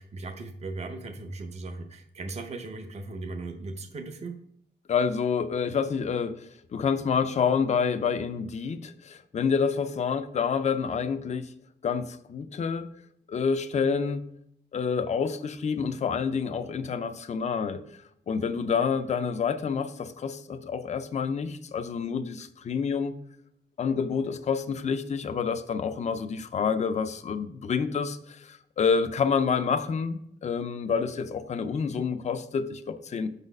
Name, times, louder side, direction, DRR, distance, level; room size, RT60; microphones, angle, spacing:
voice 1, 0.0-4.4, right 3 dB, 35° right, 5 dB, 0.6 m, -38 dB
voice 2, 4.9-11.5 11.8-12.9 13.3-14.2 14.7-18.0 18.3-23.2 23.8-33.3, left 6 dB, 40° left, 10 dB, 0.4 m, -28 dB
5.5 x 4.0 x 5.2 m, 0.70 s
wide cardioid pair, 155°, 18 cm